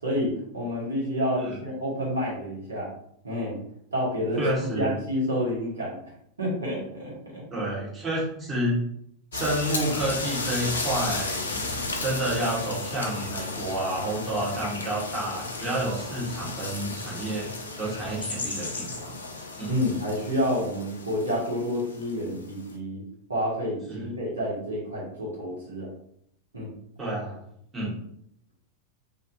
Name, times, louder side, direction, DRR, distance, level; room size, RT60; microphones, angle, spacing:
voice 1, 0.0-2.9 3.2-3.6 3.9-6.0 6.4-7.4 19.7-23.0 23.3-25.9 26.5-26.7, equal, 75° right, -5 dB, 1.2 m, -29 dB
voice 2, 4.4-4.9 7.5-8.8 9.3-17.5 17.8-19.1 19.6-19.7 23.9-24.0 27.0-27.4 27.7-27.9, right 1 dB, 15° right, -6 dB, 1.3 m, -29 dB
sound 1, 9.3-22.7, left 3 dB, 70° left, 0.4 m, -34 dB
3.0 x 2.6 x 2.7 m, 0.70 s
figure-of-eight pair, 90°, 0 cm